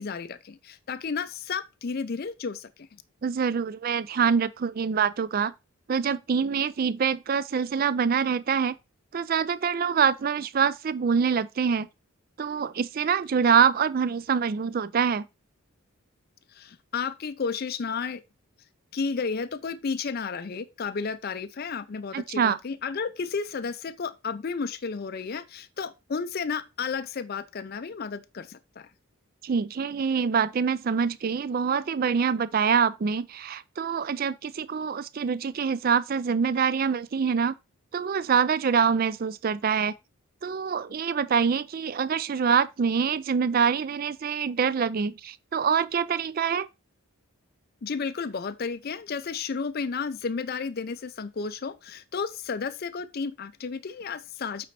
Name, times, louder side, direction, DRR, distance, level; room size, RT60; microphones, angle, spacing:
voice 1, 0.0-2.9 16.5-18.2 18.9-28.9 47.8-54.6, left 5 dB, 45° left, 0.4 m, -32 dB
voice 2, 3.2-5.5 5.9-8.8 9.1-11.9 12.4-15.3 22.1-22.6 29.4-37.5 37.9-39.9 40.4-46.7, right 6 dB, 40° right, 0.3 m, -25 dB
8.4 x 4.2 x 4.2 m
head